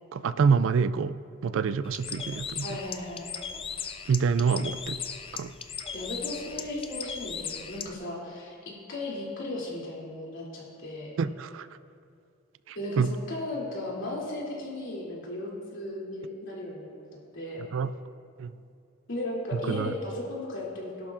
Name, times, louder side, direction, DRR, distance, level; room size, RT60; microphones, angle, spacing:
voice 1, 0.1-2.8 4.1-5.0 5.3-5.5 11.2-11.7 12.7-13.1 17.7-17.9 18.4-18.5 19.5-19.9, right 5 dB, 65° right, 15 dB, 0.3 m, -27 dB
Bird, 1.8-7.9, left 7 dB, 25° left, 0.4 m, -38 dB
voice 2, 2.6-3.3 5.9-11.1 12.7-16.9 17.3-17.6 19.1-21.1, left 1 dB, 65° left, -4 dB, 2.8 m, -36 dB
18.0 x 11.0 x 2.5 m, 2.5 s
head